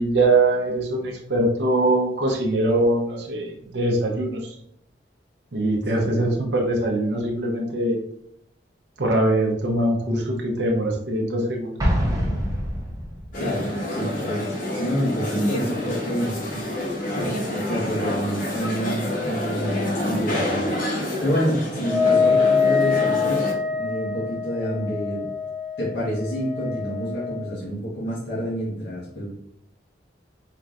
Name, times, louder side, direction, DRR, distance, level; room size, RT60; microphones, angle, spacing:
voice 1, 0.0-4.6 5.5-8.0 9.0-11.7, right 2 dB, 65° right, 0 dB, 0.7 m, -22 dB
Explosion, 11.8-13.5, equal, 20° right, 0.8 m, -24 dB
voice 2, 13.3-14.4 14.8-25.3 25.8-29.3, equal, 75° left, -7 dB, 1.3 m, -28 dB
sound 1, 13.3-23.5, left 1 dB, 50° left, 0.9 m, -27 dB
Wind instrument woodwind instrument, 21.8-27.5, left 5 dB, ahead, 1.0 m, -24 dB
3.8 x 3.3 x 2.5 m, 0.73 s
head